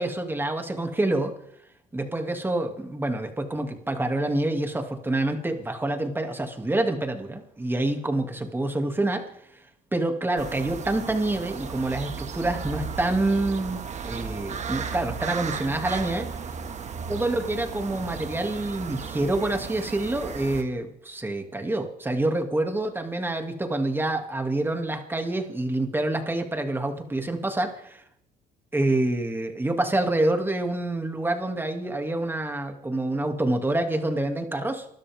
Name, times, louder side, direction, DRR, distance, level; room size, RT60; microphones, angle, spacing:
voice 1, 0.0-1.3 1.9-9.3 9.9-16.3 17.1-28.0 28.7-34.9, right 2 dB, 10° right, 5 dB, 2.6 m, -27 dB
sound 1, 10.4-20.6, right 6 dB, 45° right, 2.1 m, -35 dB
26.0 x 13.0 x 3.7 m, 0.71 s
cardioid pair, 110°, 17 cm